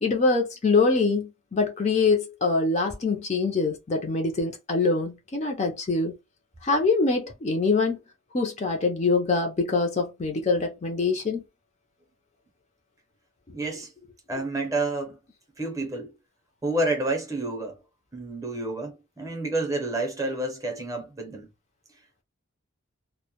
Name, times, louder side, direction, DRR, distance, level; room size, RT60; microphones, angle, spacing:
voice 1, 0.0-6.1 6.6-8.0 8.3-11.4, left 3 dB, 35° left, 0.4 m, -24 dB
voice 2, 13.5-13.9 14.3-15.2 15.6-16.1 16.6-17.8 18.1-21.5, right 2 dB, 15° right, 0.6 m, -29 dB
2.1 x 2.1 x 2.8 m
head